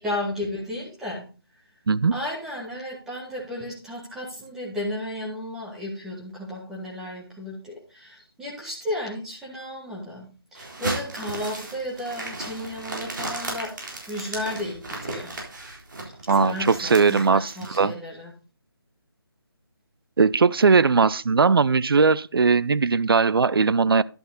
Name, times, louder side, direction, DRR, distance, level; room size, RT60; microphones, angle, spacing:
voice 1, 0.0-1.3 2.1-15.3 16.3-18.3, left 1 dB, 5° right, 1.6 m, -33 dB
sound 1, 10.5-17.8, right 2 dB, 55° right, 3.7 m, -35 dB
voice 2, 16.3-17.5 17.8-17.9 20.2-24.0, right 4 dB, 70° right, 0.5 m, -19 dB
11.0 x 7.9 x 3.9 m
figure-of-eight pair, 170°, 13 cm